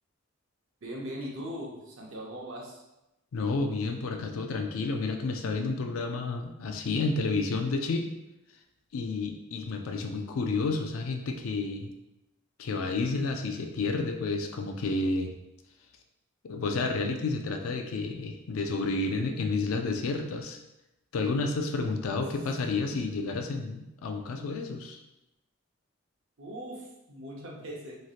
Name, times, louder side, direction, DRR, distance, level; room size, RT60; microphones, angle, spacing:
voice 1, 0.8-2.8 26.4-28.0, equal, 70° right, -2 dB, 0.7 m, -40 dB
voice 2, 3.3-8.2 8.9-11.9 12.6-15.3 16.4-20.6 21.1-25.0, left 3 dB, 90° left, 5 dB, 0.4 m, -30 dB
3.1 x 2.6 x 2.4 m, 0.92 s
head